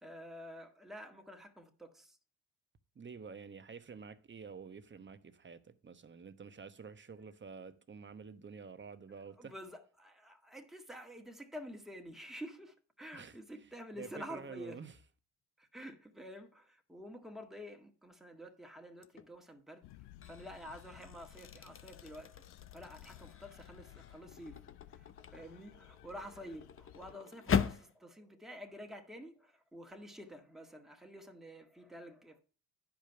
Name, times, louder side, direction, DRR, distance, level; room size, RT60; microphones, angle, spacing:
voice 1, 0.0-2.2 9.1-14.9 15.6-19.9 20.2-22.4 22.7-24.6 24.9-32.4, equal, ahead, 1.8 m, -49 dB
voice 2, 2.9-9.5 13.1-13.3 14.0-14.9, right 5 dB, 25° right, 1.0 m, -49 dB
sound 1, 19.0-19.4 19.9-27.9, left 7 dB, 30° left, 0.9 m, -40 dB
sound 2, 19.8-27.2, left 14 dB, 65° left, 0.7 m, -56 dB
10.5 x 5.2 x 5.7 m
supercardioid pair, 65°, 42 cm